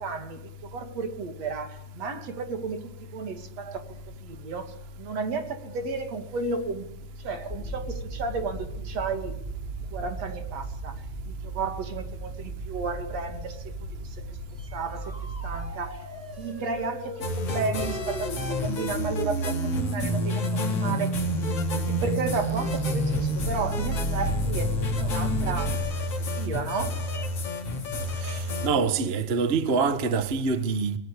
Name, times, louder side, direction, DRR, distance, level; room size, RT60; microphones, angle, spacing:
voice 1, 0.0-3.9 4.2-6.9 7.2-9.4 9.9-11.0 11.3-14.4 14.7-15.1 15.4-16.0 16.4-21.2 21.8-27.0, right 4 dB, 60° right, 3.5 m, -33 dB
sound 1, 7.5-15.7, right 3 dB, 20° left, 7.1 m, -37 dB
sound 2, 14.6-25.7, right 2 dB, 5° left, 6.9 m, -32 dB
sound 3, 17.2-28.7, left 2 dB, 50° left, 3.6 m, -30 dB
voice 2, 28.2-31.0, right 5 dB, 35° right, 1.1 m, -25 dB
29.0 x 20.0 x 8.4 m
omnidirectional pair, 3.4 m